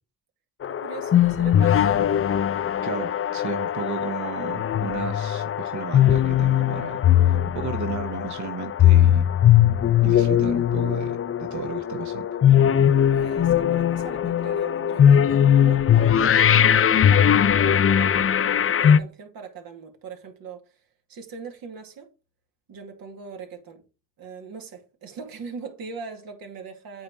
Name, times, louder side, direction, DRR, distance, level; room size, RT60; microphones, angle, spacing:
sound 1, 0.6-19.0, left 10 dB, 40° left, 0.5 m, -20 dB
voice 1, 0.7-2.1 13.1-20.8 21.1-22.1 22.7-23.8 24.2-27.0, right 5 dB, 75° right, 2.2 m, -40 dB
voice 2, 2.8-7.0 7.3-9.3 10.0-12.3, right 6 dB, 55° right, 1.0 m, -33 dB
8.6 x 4.2 x 4.6 m
supercardioid pair, 65°, 35 cm